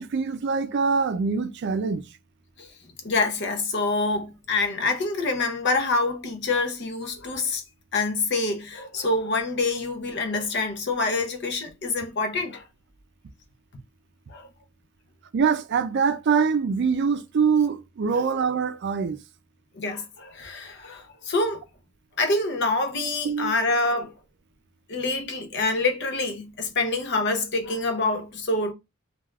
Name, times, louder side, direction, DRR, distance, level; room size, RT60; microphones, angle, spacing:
voice 1, 0.0-2.0 15.3-19.2 23.2-23.5, right 5 dB, 55° right, 0.4 m, -24 dB
voice 2, 3.0-7.6 7.9-12.6 14.3-14.5 19.7-21.6 22.2-24.1 24.9-28.7, left 3 dB, 60° left, 0.7 m, -26 dB
3.3 x 2.3 x 2.3 m
head